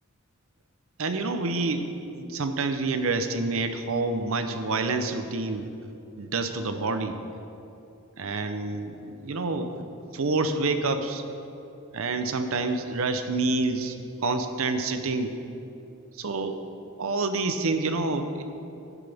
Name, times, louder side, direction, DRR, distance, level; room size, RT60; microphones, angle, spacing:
voice 1, 1.0-1.8 2.1-5.7 6.1-7.2 8.2-9.8 10.1-11.2 11.9-13.9 14.2-15.3 16.1-16.6 17.0-18.4, right 3 dB, 70° right, 8 dB, 0.7 m, -27 dB
11.5 x 11.0 x 3.5 m, 2.8 s
head